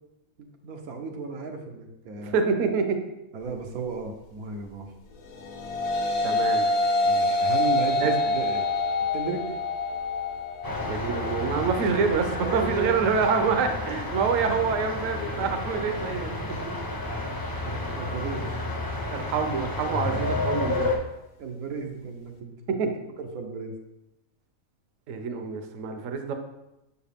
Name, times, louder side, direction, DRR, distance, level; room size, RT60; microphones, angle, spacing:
voice 1, 0.4-2.3 3.3-4.9 7.0-8.7 9.1-9.5 12.4-13.1 14.3-14.4 16.1-17.0 17.6-18.5 21.4-22.5 23.2-23.8, right 4 dB, 90° right, 3 dB, 1.3 m, -35 dB
voice 2, 2.2-3.0 6.2-6.7 8.0-8.1 10.8-16.3 19.1-21.0 22.7-22.9 25.1-26.3, right 5 dB, 70° right, 6 dB, 1.0 m, -26 dB
sound 1, 5.3-14.5, left 2 dB, 75° left, 1.2 m, -27 dB
sound 2, 10.6-21.0, left 2 dB, 25° left, 0.5 m, -31 dB
6.6 x 4.7 x 3.5 m, 0.91 s
omnidirectional pair, 1.5 m